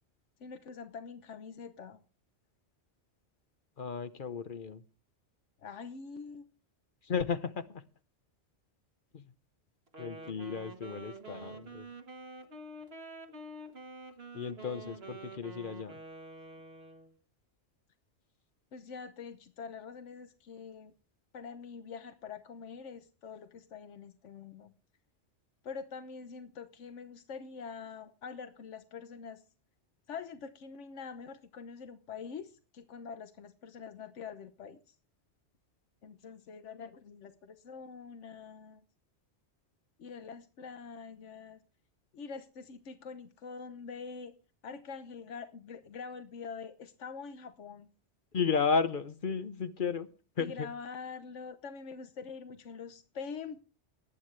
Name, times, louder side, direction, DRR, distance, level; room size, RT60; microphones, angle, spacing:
voice 1, 0.4-2.0 5.6-6.4 14.7-14.8 18.7-20.9 21.3-24.7 25.6-29.4 30.1-34.9 36.0-38.8 40.0-41.6 42.1-44.3 44.6-47.9 50.4-53.6, left 5 dB, 85° left, 1.3 m, -45 dB
voice 2, 3.8-4.8 7.0-7.8 9.1-9.3 10.0-11.9 14.3-16.0 48.3-50.1 50.4-50.7, left 5 dB, 50° left, 1.0 m, -33 dB
Wind instrument woodwind instrument, 9.9-17.1, right 2 dB, 60° right, 1.7 m, -47 dB
19.0 x 9.5 x 3.3 m
omnidirectional pair, 1.2 m